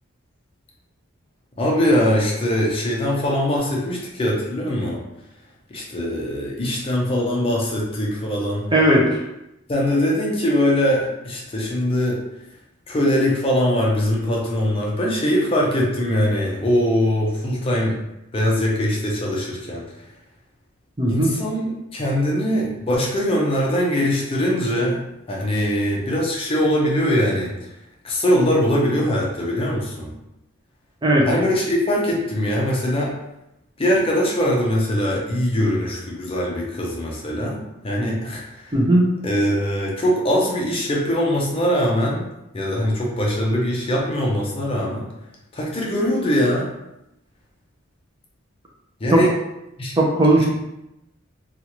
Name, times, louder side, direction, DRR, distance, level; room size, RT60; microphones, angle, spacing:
voice 1, 1.6-5.0 5.7-8.7 9.7-12.2 12.9-18.0 18.3-20.0 21.1-25.0 25.3-27.8 28.0-30.1 31.3-33.2 33.8-37.6 37.8-38.8 39.2-42.3 42.5-45.1 45.5-46.7 49.0-49.3 49.8-50.0 50.4-50.5, equal, 25° left, -2 dB, 0.5 m, -22 dB
voice 2, 8.7-9.0 21.0-21.3 31.0-31.3 38.7-39.1 49.1-49.2 50.0-50.5, right 1 dB, 20° right, -2 dB, 0.5 m, -16 dB
2.8 x 2.4 x 2.9 m, 0.88 s
head